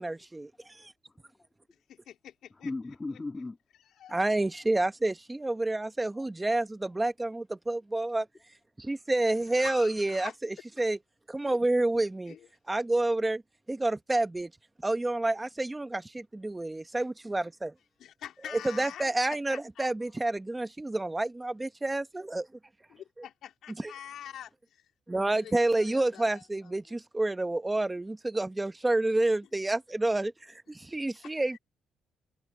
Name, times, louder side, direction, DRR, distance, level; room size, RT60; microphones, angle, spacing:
voice 1, 0.0-0.5 0.8-0.9 4.1-8.2 8.8-10.3 10.8-11.0 11.3-12.3 12.7-13.4 13.7-14.5 14.8-17.7 18.8-22.5 23.8-23.9 25.1-30.3 30.7-31.6, right 2 dB, 15° right, 1.4 m, -29 dB
voice 2, 0.6-1.5 2.6-3.6 4.1-4.5 6.1-6.3, left 3 dB, 20° left, 2.5 m, -40 dB
voice 3, 1.9-2.7 4.0-4.2 9.5-10.4 11.5-11.6 12.3-12.5 18.0-20.2 22.9-24.9 25.3-27.0 31.2-31.6, left 10 dB, 75° left, 3.6 m, -46 dB
cardioid pair, 90°, 0 cm